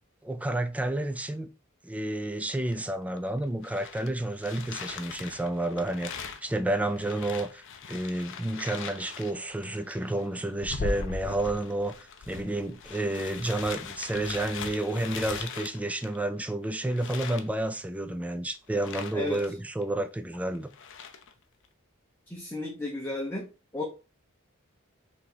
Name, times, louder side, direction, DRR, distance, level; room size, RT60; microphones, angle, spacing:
voice 1, 0.2-1.5 1.8-7.6 7.9-20.7, right 1 dB, 5° right, 0.3 m, -30 dB
sound 1, 2.7-2.8 3.2-16.5 16.9-17.5 18.7-19.5 19.8-19.9 20.5-21.3, left 4 dB, 60° left, 0.5 m, -40 dB
voice 2, 22.3-23.5 23.7-23.8, left 2 dB, 10° left, 0.8 m, -33 dB
3.4 x 2.9 x 4.0 m
head